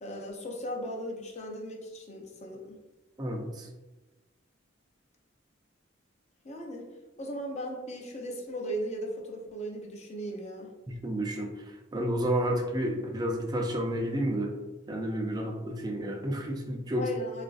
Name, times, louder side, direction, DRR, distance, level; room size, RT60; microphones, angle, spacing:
voice 1, 0.0-2.8 6.4-6.9 7.2-10.7 17.0-17.4, equal, 35° left, 0 dB, 0.5 m, -37 dB
voice 2, 3.2-3.7 10.9-11.5 11.9-14.5 14.9-17.0, right 1 dB, 20° right, 2 dB, 0.4 m, -30 dB
3.8 x 2.4 x 2.4 m, 1.1 s
head